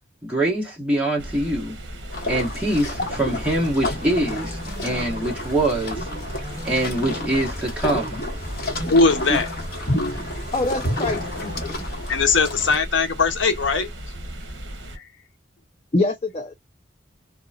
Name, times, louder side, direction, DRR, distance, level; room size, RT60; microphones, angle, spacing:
voice 1, 0.2-1.8 2.3-6.1 6.6-8.2, right 1 dB, 5° right, 1.2 m, -24 dB
sound 1, 1.2-15.0, equal, 65° right, 0.9 m, -36 dB
sound 2, 2.1-12.8, left 1 dB, 50° left, 1.0 m, -30 dB
sound 3, 3.0-11.7, equal, 25° right, 1.3 m, -40 dB
voice 2, 8.9-9.5 9.9-10.2 12.1-13.9 14.9-15.0, left 4 dB, 75° left, 0.7 m, -20 dB
voice 3, 10.5-11.7 15.9-16.5, left 2 dB, 30° left, 0.4 m, -25 dB
2.9 x 2.2 x 2.4 m
head